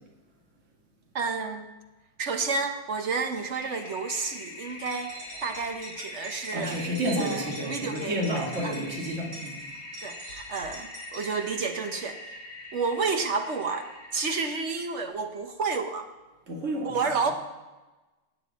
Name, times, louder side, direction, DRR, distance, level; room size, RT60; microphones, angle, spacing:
voice 1, 1.1-1.6 2.2-5.1 5.4-6.8 7.2-8.2 8.6-8.8 10.0-12.2 12.7-13.9 14.1-16.1 16.8-17.3, right 4 dB, 55° right, 5 dB, 0.8 m, -30 dB
Toilet flush, 3.5-15.1, left 2 dB, 75° left, 3.0 m, -43 dB
sound 1, 4.7-11.2, right 2 dB, 80° right, 5.2 m, -44 dB
voice 2, 6.5-9.6 16.5-17.0, equal, 35° right, -1 dB, 2.4 m, -30 dB
16.5 x 8.8 x 4.1 m, 1.1 s
omnidirectional pair, 2.3 m